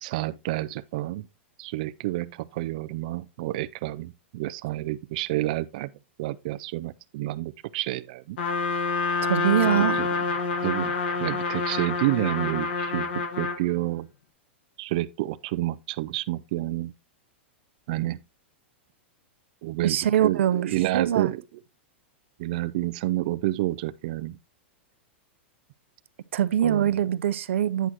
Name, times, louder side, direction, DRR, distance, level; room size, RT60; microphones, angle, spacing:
voice 1, 0.0-1.3 1.6-5.9 6.2-8.4 9.7-10.1 10.6-13.1 13.4-14.1 14.8-16.9 17.9-18.2 19.6-21.4 22.4-24.4 26.6-26.9, right 17 dB, 40° right, 0.4 m, -29 dB
Trumpet, 8.4-13.6, left 4 dB, 60° left, 1.5 m, -27 dB
voice 2, 9.2-10.0 19.8-21.3 26.3-27.9, right 10 dB, 90° right, 0.6 m, -23 dB
9.1 x 8.2 x 2.9 m
supercardioid pair, 180°, 6 cm